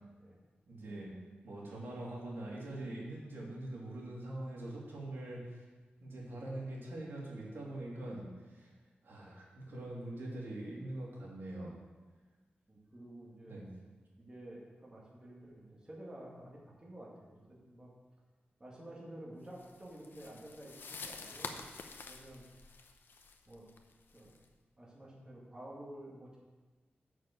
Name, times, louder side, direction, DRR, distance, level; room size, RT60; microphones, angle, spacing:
voice 1, 0.7-1.1 1.4-5.6 6.0-8.2 8.5-8.7 9.0-11.7 13.4-13.6, right 1 dB, 80° right, -5 dB, 2.8 m, -43 dB
voice 2, 12.7-13.6 14.2-17.9 18.6-21.6 22.0-22.4 23.5-23.6 24.1-24.3 24.8-26.4, right 1 dB, 20° right, -4 dB, 2.1 m, -51 dB
sound 1, 19.6-24.5, left 4 dB, 70° left, 0.7 m, -48 dB
6.9 x 6.4 x 7.5 m, 1.3 s
wide cardioid pair, 105°, 4 cm